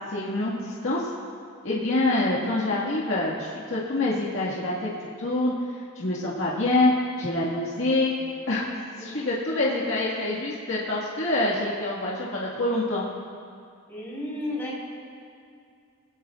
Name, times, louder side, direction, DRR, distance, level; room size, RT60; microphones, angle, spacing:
voice 1, 0.1-1.1 1.6-4.9 5.2-5.5 6.0-6.9 7.2-8.1 8.5-8.7 9.0-13.0, left 2 dB, 60° left, -6 dB, 1.9 m, -26 dB
voice 2, 9.0-9.8 13.9-14.8, left 1 dB, 10° left, -8 dB, 4.4 m, -34 dB
21.0 x 18.0 x 2.5 m, 2.3 s
head